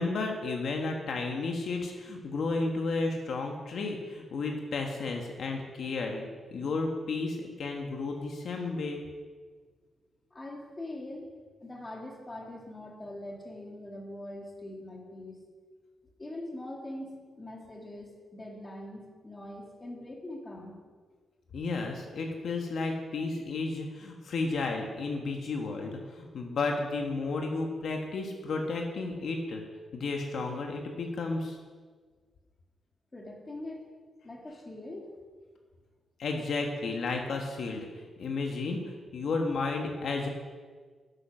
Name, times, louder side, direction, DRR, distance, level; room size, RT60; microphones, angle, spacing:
voice 1, 0.0-9.0 21.5-29.6 29.9-31.6 36.2-38.8 39.1-40.3, left 3 dB, 65° left, 2 dB, 1.3 m, -32 dB
voice 2, 10.3-11.3 11.6-15.4 16.2-20.8 33.1-33.9 34.2-35.2, left 1 dB, 20° left, 0 dB, 2.1 m, -42 dB
10.5 x 8.8 x 6.3 m, 1.5 s
wide cardioid pair, 140°, 0 cm